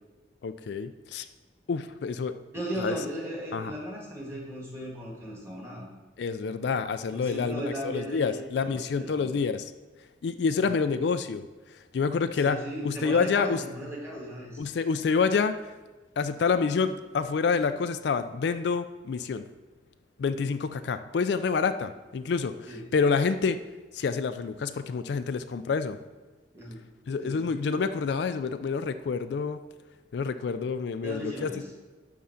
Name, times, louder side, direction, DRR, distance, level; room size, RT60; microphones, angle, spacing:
voice 1, 0.4-1.3 1.7-2.3 2.8-2.9 3.5-3.7 6.2-9.7 10.2-13.6 14.6-15.5 16.2-19.4 20.2-23.6 23.9-26.0 27.1-29.6 30.1-31.5, left 5 dB, 60° left, 10 dB, 0.3 m, -28 dB
voice 2, 2.5-5.9 7.1-9.3 10.6-10.9 12.4-14.6 22.7-22.9 26.5-26.8 27.2-27.5 31.0-31.7, equal, 15° right, -3 dB, 1.8 m, -36 dB
11.0 x 3.8 x 5.8 m, 1.3 s
head